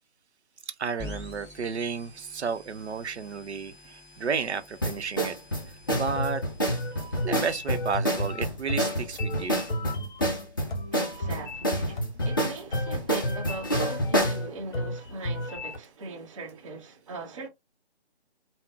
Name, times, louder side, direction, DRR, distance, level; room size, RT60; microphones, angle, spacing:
voice 1, 0.7-5.4 5.9-6.4 7.2-9.6, right 5 dB, 80° right, 0.6 m, -32 dB
sound 1, 1.0-8.6, left 2 dB, 5° right, 1.9 m, -48 dB
sound 2, 4.8-14.4, equal, 20° left, 0.5 m, -28 dB
sound 3, 5.9-15.8, left 1 dB, 45° left, 0.8 m, -32 dB
voice 2, 10.9-17.5, right 3 dB, 30° right, 0.9 m, -40 dB
3.5 x 2.1 x 2.4 m
figure-of-eight pair, 150°, 33 cm